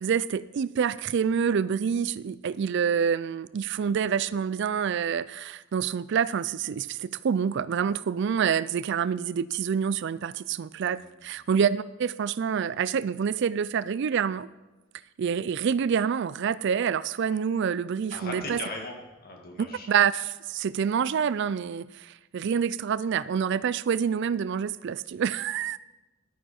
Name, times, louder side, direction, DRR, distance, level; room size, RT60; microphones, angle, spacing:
voice 1, 0.0-14.5 15.2-18.6 19.6-25.8, right 7 dB, 55° right, 17 dB, 0.3 m, -27 dB
voice 2, 10.9-11.2 18.1-19.0 19.2-19.9, left 2 dB, 45° left, 1 dB, 2.0 m, -38 dB
11.5 x 9.4 x 4.3 m, 1.1 s
head